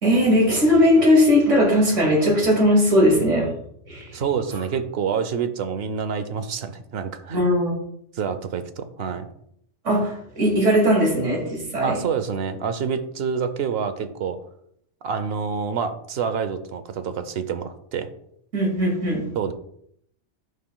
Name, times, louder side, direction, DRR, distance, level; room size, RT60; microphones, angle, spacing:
voice 1, 0.0-3.5 3.9-4.2 7.3-7.8 9.8-12.0 18.5-19.3, equal, 85° right, -1 dB, 2.5 m, -19 dB
voice 2, 4.1-7.4 8.1-9.3 11.8-14.4 15.0-18.1 19.4-19.5, right 6 dB, 60° right, 10 dB, 0.8 m, -27 dB
9.3 x 5.7 x 2.2 m, 0.71 s
omnidirectional pair, 1.2 m